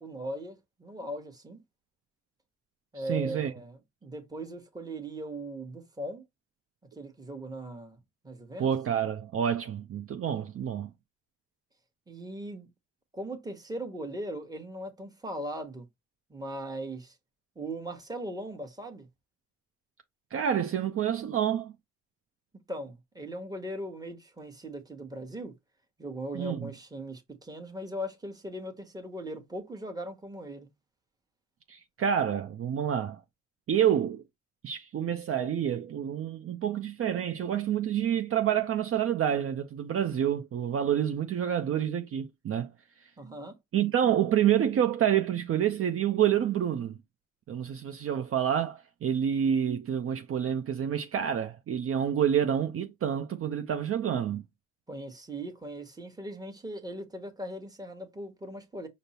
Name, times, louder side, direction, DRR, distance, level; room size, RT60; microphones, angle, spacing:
voice 1, 0.0-1.6 2.9-6.2 7.0-8.7 12.1-12.7 13.1-15.8 16.3-17.1 17.6-19.1 22.7-25.5 26.0-30.7 43.2-43.6 54.9-58.9, right 1 dB, 10° right, 1.1 m, -39 dB
voice 2, 3.0-3.5 8.6-10.9 20.3-21.7 26.3-26.7 31.7-33.2 33.7-34.2 34.6-42.7 43.0-43.1 43.7-47.0 47.5-54.4, right 9 dB, 50° right, 0.5 m, -28 dB
5.1 x 2.0 x 4.2 m
cardioid pair, 90°, 30 cm